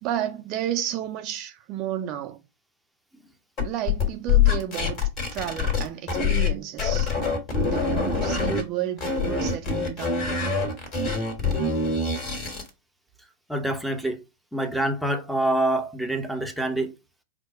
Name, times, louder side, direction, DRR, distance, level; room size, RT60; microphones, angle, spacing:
voice 1, 0.0-2.4 3.6-7.2 7.6-10.2, right 11 dB, 40° right, 0.5 m, -32 dB
sound 1, 3.6-6.5 6.8-8.6 9.0-12.7, left 5 dB, 35° left, 1.6 m, -24 dB
voice 2, 13.5-14.2 14.5-16.9, right 1 dB, ahead, 0.7 m, -26 dB
4.6 x 2.2 x 4.4 m
figure-of-eight pair, 100°, 0 cm